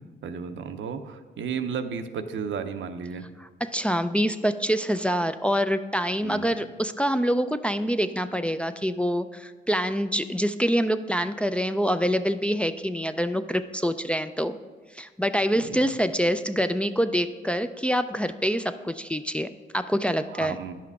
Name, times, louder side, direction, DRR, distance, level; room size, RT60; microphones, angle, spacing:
voice 1, 0.0-3.2 6.2-6.5 15.8-16.0 20.3-20.8, right 6 dB, 75° right, 8 dB, 0.6 m, -33 dB
voice 2, 3.4-14.6 14.9-20.6, equal, 5° left, 8 dB, 0.4 m, -26 dB
10.5 x 5.7 x 4.8 m, 1.4 s
cardioid pair, 70°, 20 cm